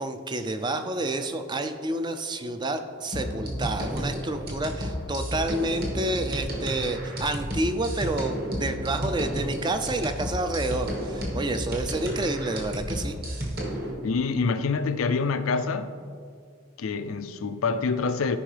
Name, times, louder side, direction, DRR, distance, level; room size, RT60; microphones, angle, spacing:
voice 1, 0.0-13.2, right 2 dB, 20° right, 0.4 m, -29 dB
sound 1, 3.1-13.9, equal, 50° right, 1.6 m, -32 dB
voice 2, 14.0-16.0 16.8-18.4, left 4 dB, 85° left, 0.5 m, -26 dB
13.5 x 5.3 x 3.3 m
head